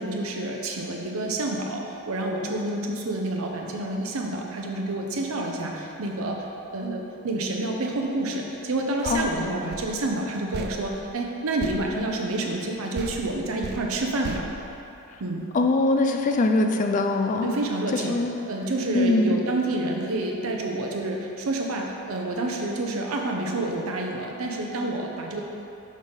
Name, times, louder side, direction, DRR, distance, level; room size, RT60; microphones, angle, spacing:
voice 1, 0.0-6.4 6.7-14.5 15.2-15.5 17.4-18.2 18.5-25.4, right 2 dB, 75° right, 1 dB, 0.7 m, -28 dB
sound 1, 9.0-12.7 12.9-15.4, right 4 dB, 50° right, 0.3 m, -39 dB
voice 2, 15.5-17.5 17.9-18.3 18.9-19.4, left 2 dB, 35° left, 4 dB, 0.4 m, -22 dB
5.6 x 5.1 x 3.5 m, 2.9 s
head